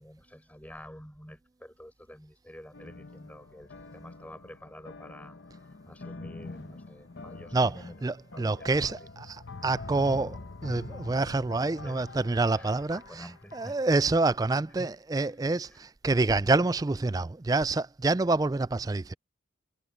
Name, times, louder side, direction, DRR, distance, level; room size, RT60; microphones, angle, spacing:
voice 1, 0.0-9.1 11.8-12.1 12.5-13.8 14.8-14.9 15.7-15.8, equal, 10° left, 5.9 m, -49 dB
sound 1, 2.7-14.2, left 3 dB, 65° left, 1.0 m, -45 dB
voice 2, 7.5-13.0 13.5-19.1, right 3 dB, 20° right, 0.3 m, -27 dB
head